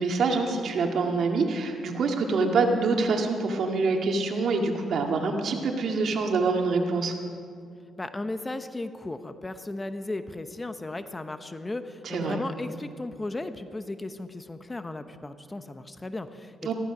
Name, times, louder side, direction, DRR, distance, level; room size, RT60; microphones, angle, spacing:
voice 1, 0.0-7.1 12.0-12.4 16.6-16.7, right 4 dB, 60° right, 3 dB, 2.0 m, -25 dB
voice 2, 8.0-16.7, left 2 dB, 20° left, 10 dB, 0.8 m, -35 dB
14.5 x 14.0 x 6.1 m, 2.3 s
cardioid pair, 90°, 0 cm